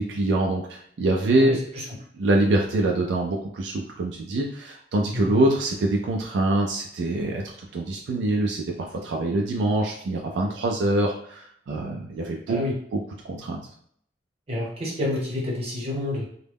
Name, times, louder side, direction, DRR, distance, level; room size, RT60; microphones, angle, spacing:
voice 1, 0.0-1.6 2.1-12.6 12.9-13.0 13.2-13.6, right 2 dB, 80° right, 0 dB, 0.4 m, -24 dB
voice 2, 1.4-1.8 5.1-5.3 12.5-12.7 14.5-16.2, left 2 dB, 35° right, -4 dB, 0.9 m, -28 dB
2.2 x 2.0 x 3.4 m, 0.63 s
head